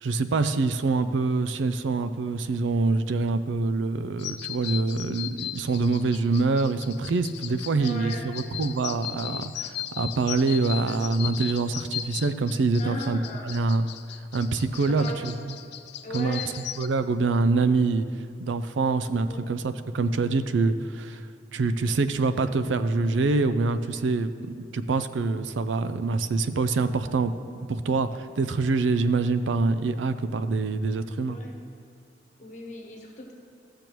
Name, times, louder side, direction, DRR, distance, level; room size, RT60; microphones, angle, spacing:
voice 1, 0.0-13.9 14.3-15.5 16.1-16.4 16.8-18.1 18.4-21.3 21.5-27.3 27.7-31.4, right 3 dB, 90° right, 11 dB, 0.4 m, -25 dB
sound 1, 4.2-16.9, left 12 dB, 65° left, 0.3 m, -37 dB
voice 2, 7.8-8.3 10.7-10.9 12.8-13.5 15.0-15.2 16.0-16.5 19.2-19.4 31.3-31.5 32.4-33.3, equal, 45° left, 0 dB, 1.1 m, -37 dB
13.5 x 6.8 x 3.1 m, 2.4 s
head